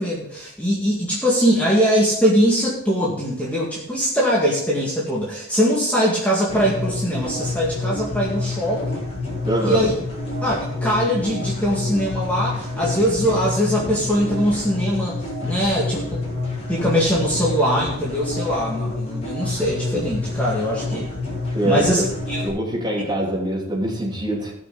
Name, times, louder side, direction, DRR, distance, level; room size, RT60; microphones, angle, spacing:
voice 1, 0.0-9.0 9.6-9.9 10.4-16.4 16.7-21.1 21.6-22.4, equal, 5° left, -6 dB, 2.0 m, -22 dB
sound 1, 6.5-22.5, left 2 dB, 30° left, 4.2 m, -28 dB
voice 2, 9.4-9.9 21.5-22.1 22.4-24.5, right 1 dB, 20° right, -4 dB, 3.6 m, -24 dB
17.5 x 6.3 x 3.8 m, 0.72 s
head